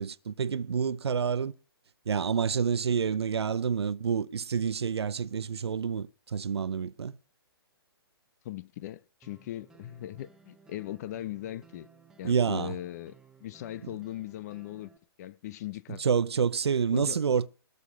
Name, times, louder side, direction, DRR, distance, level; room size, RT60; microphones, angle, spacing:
voice 1, 0.0-1.5 2.1-7.1 12.2-12.8 16.0-17.5, right 6 dB, 90° right, 0.7 m, -28 dB
voice 2, 8.4-11.9 12.2-14.9 15.2-16.0 16.9-17.2, left 13 dB, 40° left, 0.7 m, -39 dB
sound 1, 9.2-15.0, right 6 dB, 5° right, 1.1 m, -58 dB
20.0 x 6.8 x 6.1 m
hypercardioid pair, 145°, 13 cm